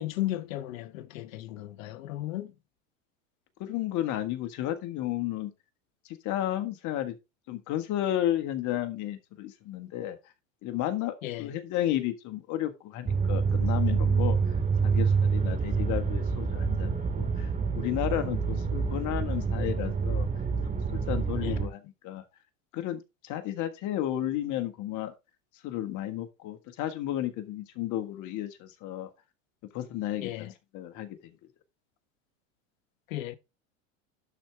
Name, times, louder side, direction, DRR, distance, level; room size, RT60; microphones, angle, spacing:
voice 1, 0.0-2.5 11.2-11.5 21.4-21.6 30.2-30.5 33.1-33.4, left 15 dB, 80° left, 1.1 m, -35 dB
voice 2, 3.6-5.5 6.2-7.1 7.5-10.2 10.6-14.4 14.8-17.5 17.7-20.3 20.9-22.2 22.7-25.1 25.6-29.1 29.7-31.2, left 12 dB, 50° left, 1.6 m, -32 dB
sound 1, 13.1-21.7, right 5 dB, 20° right, 1.9 m, -27 dB
11.5 x 4.6 x 3.5 m
supercardioid pair, 110°, 39 cm